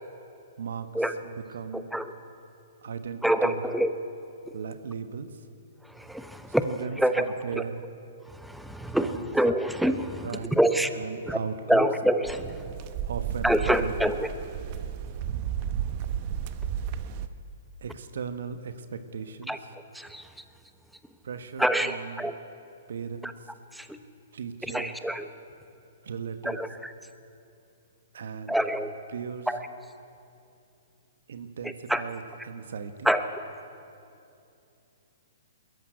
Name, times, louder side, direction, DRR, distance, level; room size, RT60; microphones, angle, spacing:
voice 1, 0.6-1.9 2.8-3.6 4.5-5.3 6.6-7.8 9.0-9.3 10.2-10.6 10.9-11.9 13.1-14.2 17.8-19.6 21.2-22.2 22.9-23.3 24.3-25.0 26.0-26.6 28.1-28.6 29.1-29.5 31.3-33.1, right 6 dB, 70° right, 10 dB, 1.3 m, -37 dB
voice 2, 1.7-2.1 3.2-3.9 5.9-6.7 7.0-7.3 7.5-7.6 8.4-10.3 10.6-10.9 11.3-11.4 11.7-12.5 13.4-14.3 19.5-19.6 19.9-20.2 21.6-22.3 23.2-23.3 23.7-24.0 24.7-25.3 26.4-26.7 28.5-28.9 29.5-29.6 31.6-32.0 33.0-33.2, right 1 dB, ahead, 9 dB, 1.0 m, -26 dB
sound 1, 12.2-17.3, right 9 dB, 40° right, 1.0 m, -33 dB
21.5 x 14.0 x 9.6 m, 2.7 s
hypercardioid pair, 130°, 0 cm